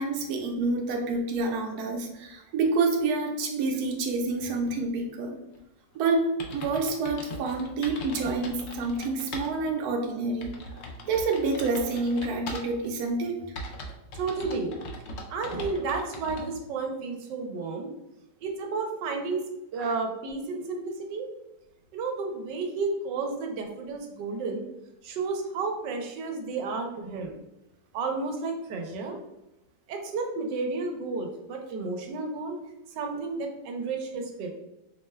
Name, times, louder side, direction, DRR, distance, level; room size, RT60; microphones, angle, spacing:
voice 1, 0.0-5.4 5.9-10.5 11.1-13.4 19.8-20.0, right 3 dB, 70° right, 2 dB, 1.1 m, -28 dB
sound 1, 6.0-6.1 6.4-9.5 9.9-10.0 10.4-12.9 13.6-16.5, left 1 dB, 85° left, 0.6 m, -40 dB
voice 2, 14.1-14.8 15.3-17.9 18.4-19.5 19.7-21.3 21.9-24.6 25.0-27.3 27.9-29.2 29.9-32.6 32.9-34.5, right 4 dB, 85° right, 3 dB, 1.3 m, -32 dB
4.8 x 2.2 x 3.1 m, 0.91 s
omnidirectional pair, 1.8 m